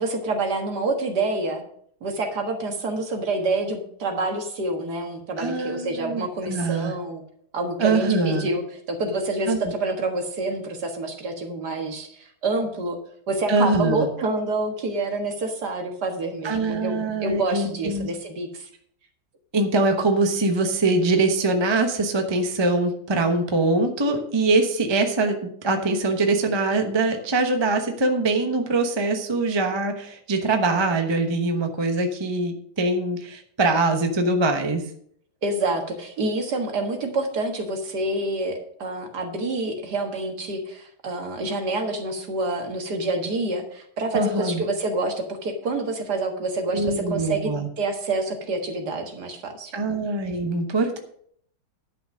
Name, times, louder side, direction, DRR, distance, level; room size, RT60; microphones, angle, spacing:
voice 1, 0.0-1.7 2.0-7.2 7.5-13.0 13.3-18.7 35.4-50.0, right 2 dB, 60° right, 4 dB, 2.1 m, -27 dB
voice 2, 5.4-6.9 7.8-8.5 9.5-9.6 13.5-14.1 16.4-18.1 19.5-34.8 44.1-44.6 46.7-47.7 49.7-51.0, right 2 dB, 20° right, 5 dB, 0.8 m, -23 dB
11.0 x 6.1 x 6.3 m, 0.64 s
omnidirectional pair, 2.0 m